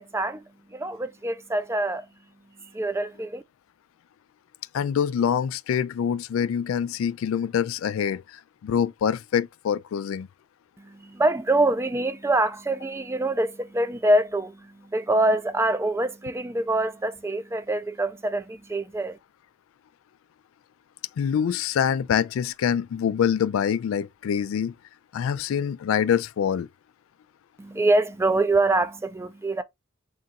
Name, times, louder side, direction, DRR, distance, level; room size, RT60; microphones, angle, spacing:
voice 1, 0.0-2.1 2.6-3.4 10.8-19.2 27.6-29.6, right 2 dB, 15° right, 0.3 m, -25 dB
voice 2, 4.7-10.3 21.2-24.7 25.1-26.7, left 8 dB, 90° left, 0.3 m, -25 dB
3.8 x 2.3 x 4.0 m
head